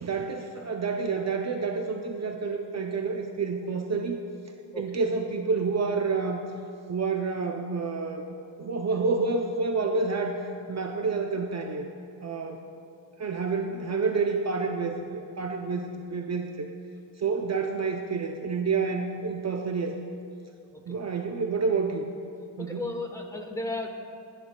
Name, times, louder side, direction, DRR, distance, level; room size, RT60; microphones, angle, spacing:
voice 1, 0.0-4.2 4.8-6.4 6.9-8.2 8.6-10.4 10.7-11.9 12.2-12.6 13.2-16.7 17.2-20.0 20.9-22.1 22.6-22.8, right 4 dB, 35° right, 3 dB, 0.6 m, -29 dB
voice 2, 22.6-23.9, left 2 dB, 5° left, 3 dB, 1.2 m, -35 dB
25.5 x 9.8 x 2.3 m, 2.5 s
cardioid pair, 115°, 45 cm